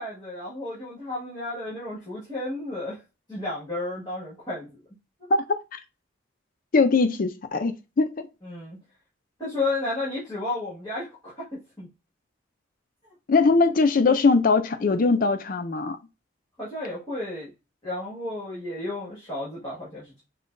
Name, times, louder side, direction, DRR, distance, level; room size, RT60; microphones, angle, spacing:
voice 1, 0.0-3.0 3.3-4.8 8.4-8.8 9.4-11.9 16.6-17.5 17.8-20.2, left 2 dB, 20° left, 1.7 m, -32 dB
voice 2, 5.3-5.8 6.7-8.3 13.3-16.0, left 4 dB, 45° left, 0.4 m, -21 dB
5.5 x 2.2 x 2.5 m
head